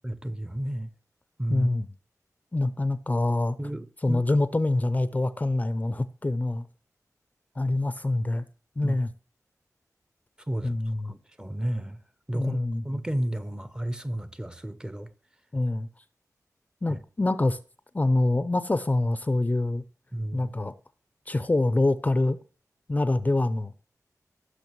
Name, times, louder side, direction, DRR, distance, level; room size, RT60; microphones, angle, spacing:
voice 1, 0.0-0.9 1.4-1.7 3.6-4.2 8.8-9.0 10.5-10.8 11.0-12.0 12.3-12.6 12.8-15.1 16.9-17.0 20.1-20.5, right 1 dB, 15° right, 0.7 m, -32 dB
voice 2, 1.5-1.9 2.5-3.6 4.0-6.7 7.6-8.4 8.8-9.1 10.6-11.1 12.3-12.8 15.5-15.9 16.8-17.6 17.9-19.8 20.3-20.7 21.3-22.4 22.9-23.7, left 2 dB, 25° left, 0.5 m, -25 dB
16.0 x 6.4 x 3.1 m
wide cardioid pair, 105°, 6 cm